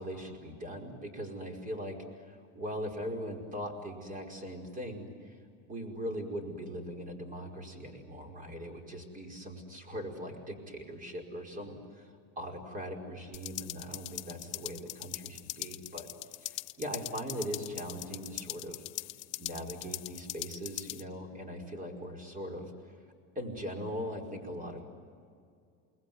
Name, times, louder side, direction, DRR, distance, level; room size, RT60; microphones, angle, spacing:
voice 1, 0.0-5.4 5.7-16.1 16.4-18.8 19.4-22.7 23.4-24.8, equal, 25° right, 3 dB, 5.2 m, -40 dB
sound 1, 13.3-21.0, left 21 dB, 65° left, 1.0 m, -41 dB
29.5 x 21.0 x 9.5 m, 2.3 s
cardioid pair, 135°, 35 cm